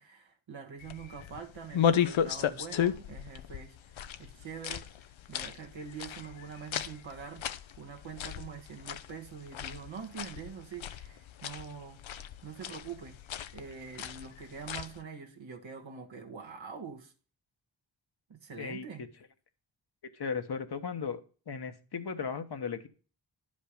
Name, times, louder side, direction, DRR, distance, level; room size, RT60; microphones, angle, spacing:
voice 1, 0.0-13.2 13.5-17.1 18.3-19.0, right 6 dB, 75° right, 1.6 m, -45 dB
sound 1, 0.8-15.0, left 9 dB, 80° left, 0.7 m, -35 dB
voice 2, 20.1-21.2 21.5-22.9, left 5 dB, 55° left, 1.1 m, -36 dB
10.0 x 5.3 x 5.1 m
cardioid pair, 45°, 46 cm